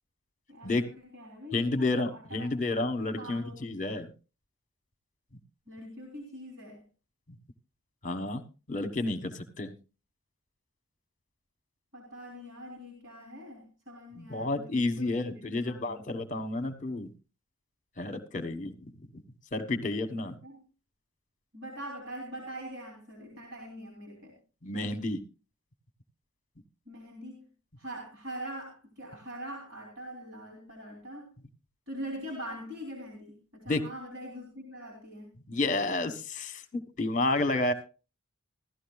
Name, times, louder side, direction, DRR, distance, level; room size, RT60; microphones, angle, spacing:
voice 1, 0.5-0.8 1.1-2.5 3.2-3.8 5.7-6.8 11.9-16.2 20.2-20.6 21.5-24.4 26.9-27.5 27.8-31.3 31.9-35.3, equal, 60° right, 1 dB, 3.5 m, -43 dB
voice 2, 1.5-4.1 8.0-9.7 14.2-17.1 18.0-19.2 19.5-20.4 24.6-25.2 33.7-33.8 35.5-37.7, left 2 dB, 35° left, 9 dB, 1.2 m, -31 dB
15.5 x 13.0 x 2.3 m, 0.32 s
head